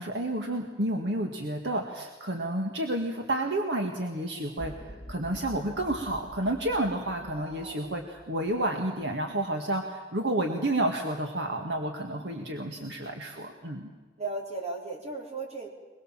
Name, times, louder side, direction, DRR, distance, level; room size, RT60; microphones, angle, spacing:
voice 1, 0.0-13.9, right 1 dB, 85° right, 3 dB, 2.1 m, -30 dB
sound 1, 4.6-8.9, equal, 25° left, 3.0 m, -47 dB
voice 2, 7.3-7.8 12.0-12.6 14.2-15.7, right 3 dB, 40° right, 1 dB, 4.6 m, -37 dB
23.0 x 22.5 x 7.6 m, 1.4 s
head